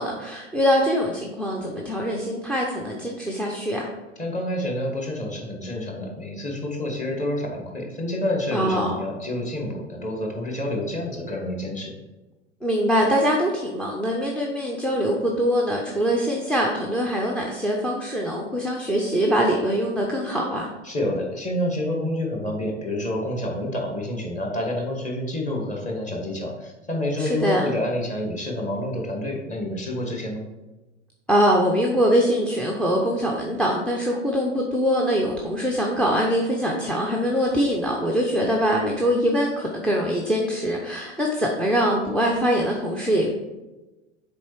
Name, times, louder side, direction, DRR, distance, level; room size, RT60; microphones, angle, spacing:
voice 1, 0.0-3.9 8.5-9.0 12.6-20.7 27.2-27.7 31.3-43.3, equal, 5° left, 0 dB, 0.6 m, -23 dB
voice 2, 4.2-11.9 20.8-30.4, left 1 dB, 20° left, 0 dB, 1.7 m, -28 dB
7.1 x 4.4 x 4.6 m, 1.1 s
figure-of-eight pair, 90°, 37 cm